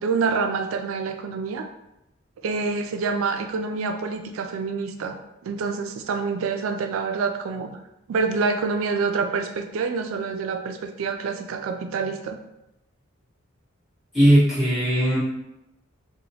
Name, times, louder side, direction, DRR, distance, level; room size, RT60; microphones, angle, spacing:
voice 1, 0.0-1.7 2.4-7.7 8.1-12.4, right 4 dB, 75° right, 6 dB, 0.3 m, -27 dB
voice 2, 14.1-15.2, equal, ahead, -12 dB, 1.2 m, -18 dB
2.9 x 2.1 x 2.7 m, 0.87 s
head